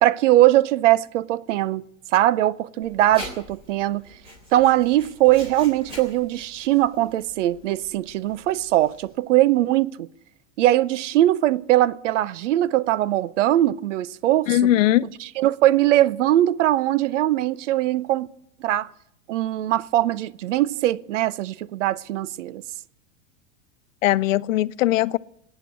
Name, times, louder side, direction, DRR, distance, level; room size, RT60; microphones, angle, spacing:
voice 1, 0.0-1.8 2.1-4.1 4.5-10.1 10.6-14.6 15.4-18.3 18.6-18.9 19.3-22.6, right 14 dB, 70° right, 0.7 m, -21 dB
Writing, 2.8-9.1, equal, 15° right, 3.5 m, -43 dB
voice 2, 14.5-15.1 24.0-25.2, left 14 dB, 85° left, 0.6 m, -20 dB
19.0 x 9.1 x 8.2 m
supercardioid pair, 170°, 38 cm